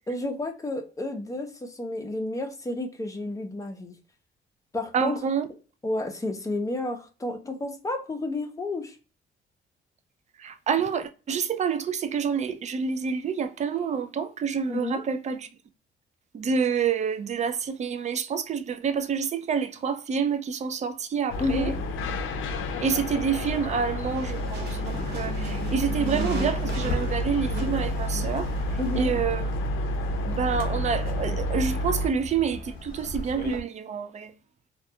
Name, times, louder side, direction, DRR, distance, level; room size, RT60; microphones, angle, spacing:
voice 1, 0.1-3.9 4.7-5.2 5.8-9.0 14.7-15.0 21.4-21.8 28.8-29.1, left 2 dB, 15° left, 0.6 m, -31 dB
voice 2, 4.9-5.5 10.4-15.5 16.3-21.7 22.8-28.5 28.9-29.5 30.2-34.3, right 6 dB, 35° right, 0.4 m, -28 dB
sound 1, 21.3-32.1, left 1 dB, 80° left, 0.5 m, -29 dB
sound 2, 24.0-29.2, right 2 dB, 55° right, 0.9 m, -38 dB
Walk footsteps, 26.7-33.6, left 2 dB, 45° left, 0.8 m, -38 dB
2.3 x 2.3 x 2.7 m
cardioid pair, 90°, 20 cm